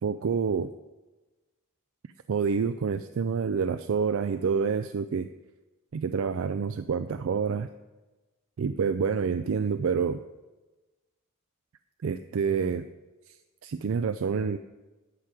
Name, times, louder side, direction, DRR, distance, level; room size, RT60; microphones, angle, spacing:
voice 1, 0.0-0.7 2.3-5.3 5.9-7.7 8.6-10.2 12.0-12.9 13.3-13.4 13.6-14.6, right 6 dB, 65° right, 11 dB, 0.4 m, -27 dB
11.5 x 4.9 x 7.5 m, 1.2 s
head